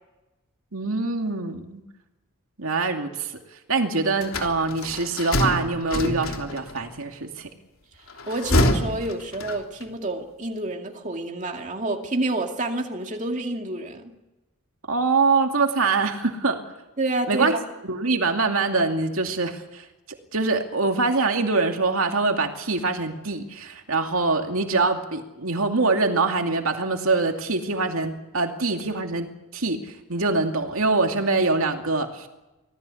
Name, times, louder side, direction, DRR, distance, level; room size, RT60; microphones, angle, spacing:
voice 1, 0.7-1.8 2.6-3.3 3.7-7.5 14.9-16.6 17.3-17.5 17.8-29.3 29.5-32.3, right 3 dB, 70° right, 4 dB, 2.5 m, -24 dB
sound 1, 4.2-6.8 8.1-9.9, left 1 dB, 70° left, 3.3 m, -25 dB
voice 2, 8.3-14.1 17.0-17.6, right 2 dB, 35° right, 3 dB, 2.4 m, -28 dB
25.5 x 18.5 x 8.5 m, 1.0 s
head